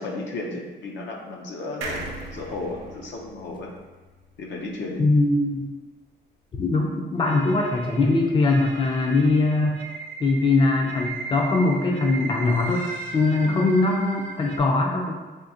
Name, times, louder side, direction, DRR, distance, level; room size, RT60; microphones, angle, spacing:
voice 1, 0.0-3.7 4.4-5.1 13.4-14.1, left 2 dB, 70° left, 0 dB, 0.7 m, -34 dB
sound 1, 1.8-5.3 5.7-5.8 6.0-6.1, right 2 dB, 85° right, 0.6 m, -38 dB
voice 2, 5.0-5.6 6.6-9.8 10.2-15.2, left 3 dB, 25° left, 1 dB, 0.4 m, -21 dB
sound 2, 7.2-14.6, right 4 dB, 40° right, 0.6 m, -37 dB
3.7 x 2.7 x 2.6 m, 1.3 s
cardioid pair, 90°, 20 cm